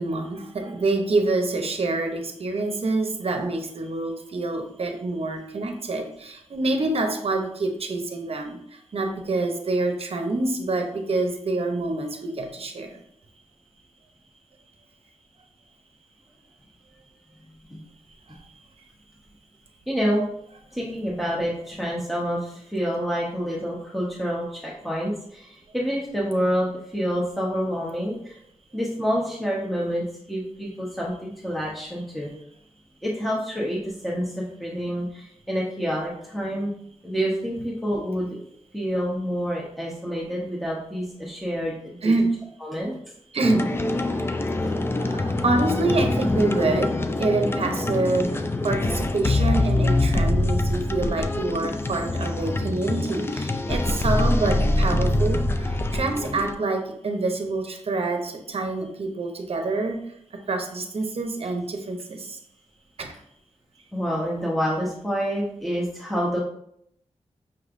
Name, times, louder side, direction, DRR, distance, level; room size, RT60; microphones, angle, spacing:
voice 1, 0.0-13.0 42.0-42.3 43.3-43.7 44.7-60.0 60.5-62.4 63.0-63.1, right 2 dB, 55° right, 4 dB, 0.7 m, -26 dB
voice 2, 19.9-20.2 20.7-28.4 28.7-32.3 33.0-36.7 37.0-38.4 38.7-42.2 42.6-42.9 63.9-66.4, equal, ahead, -5 dB, 0.9 m, -28 dB
sound 1, 43.4-56.5, left 2 dB, 20° left, 0.4 m, -24 dB
5.7 x 3.1 x 2.5 m, 0.72 s
cardioid pair, 60°, 12 cm